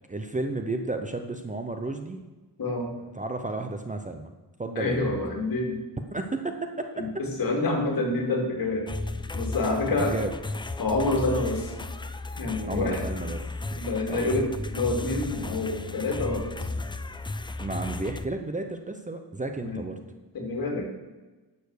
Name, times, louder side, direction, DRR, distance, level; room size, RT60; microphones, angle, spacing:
voice 1, 0.1-2.2 3.0-4.3 4.6-5.1 6.1-7.0 9.9-10.3 12.7-13.4 13.7-13.8 14.1-14.2 17.6-20.0, right 2 dB, 20° right, 6 dB, 0.7 m, -32 dB
voice 2, 2.6-2.9 4.7-5.8 7.0-7.1 7.4-8.8 9.3-10.1 10.8-11.7 12.4-13.0 13.8-16.5 19.6-19.8 20.3-20.9, left 2 dB, 55° left, 2 dB, 2.8 m, -27 dB
sound 1, 8.9-18.3, left 2 dB, 10° left, 0.4 m, -34 dB
12.0 x 7.0 x 6.5 m, 1.2 s
wide cardioid pair, 150°, 42 cm